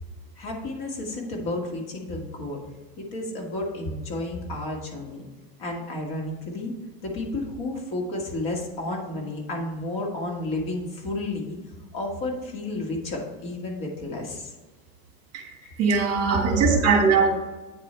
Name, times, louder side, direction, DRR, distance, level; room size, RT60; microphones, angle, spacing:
voice 1, 0.4-2.6 3.0-5.2 5.6-6.7 7.0-11.6 11.9-14.5 15.6-15.8 16.2-16.7, left 1 dB, 45° left, 0 dB, 2.2 m, -31 dB
voice 2, 15.8-17.4, right 5 dB, 35° right, 2 dB, 1.5 m, -21 dB
8.7 x 4.8 x 4.5 m, 1.2 s
supercardioid pair, 145°, 43 cm